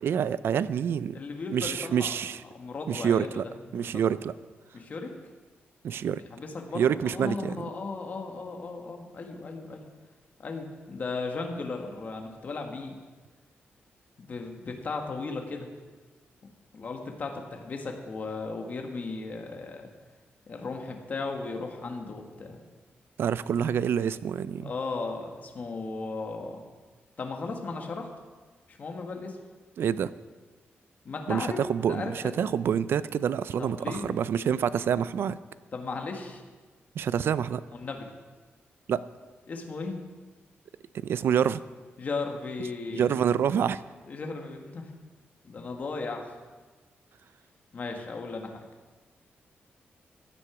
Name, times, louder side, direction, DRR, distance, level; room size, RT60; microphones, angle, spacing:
voice 1, 0.0-1.2 1.5-2.4 2.9-3.4 3.7-4.3 5.8-6.2 6.7-7.6 23.2-24.7 29.8-30.1 31.3-35.4 37.0-37.6 38.9-39.0 40.9-41.6 42.9-43.8, right 8 dB, 70° right, 16 dB, 0.4 m, -27 dB
voice 2, 1.1-2.2 2.5-4.1 4.7-5.1 6.0-9.8 10.4-12.9 14.2-15.7 16.4-19.9 20.5-22.6 24.6-26.7 27.2-28.1 28.7-29.4 31.0-31.6 31.9-32.5 33.6-34.2 35.7-36.4 37.7-38.1 39.5-40.0 42.0-43.1 44.1-44.8 45.4-46.3 47.7-48.6, left 3 dB, 40° left, 2 dB, 1.5 m, -36 dB
15.5 x 9.9 x 4.9 m, 1.4 s
wide cardioid pair, 155°, 4 cm